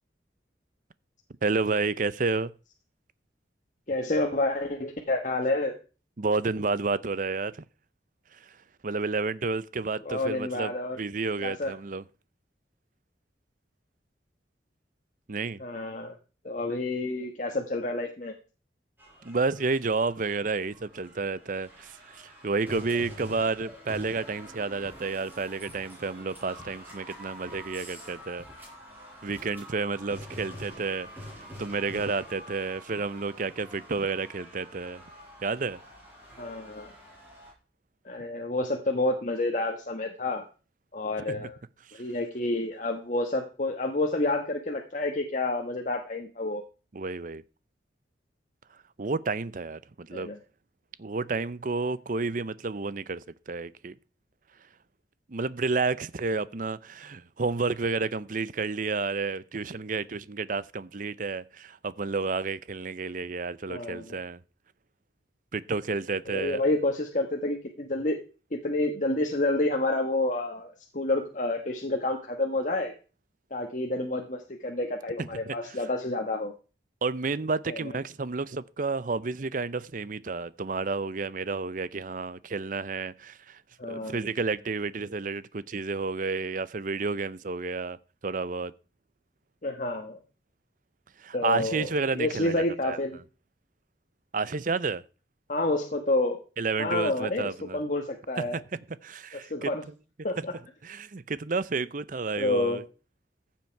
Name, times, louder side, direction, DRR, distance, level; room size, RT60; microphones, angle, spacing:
voice 1, 1.4-2.5 6.2-7.6 8.3-8.6 8.8-10.7 11.0-12.0 15.3-15.6 19.2-28.4 29.2-31.3 31.6-35.0 35.4-35.8 41.3-41.5 41.9-42.0 46.9-47.4 49.0-50.3 51.0-53.9 55.3-64.4 65.5-66.6 75.2-75.5 77.0-83.6 83.9-88.0 88.2-88.7 91.2-93.0 94.3-95.0 96.6-97.8 98.4-98.6 99.0-99.7 100.4-100.5 100.8-102.8, right 4 dB, 45° right, 0.6 m, -31 dB
voice 2, 3.9-5.7 10.0-11.0 11.4-11.7 15.6-16.1 16.4-18.3 36.4-36.9 38.0-40.4 40.9-41.6 41.9-46.6 50.1-50.4 63.7-64.2 66.3-68.2 68.5-72.9 73.5-76.5 77.7-77.9 83.8-84.2 89.6-90.2 91.3-91.9 92.1-93.2 95.5-96.4 96.8-98.6 99.5-99.8 100.2-100.5 102.4-102.8, left 2 dB, 45° left, 1.3 m, -29 dB
sound 1, 19.0-37.5, equal, 10° right, 5.9 m, -46 dB
15.0 x 7.5 x 4.6 m
head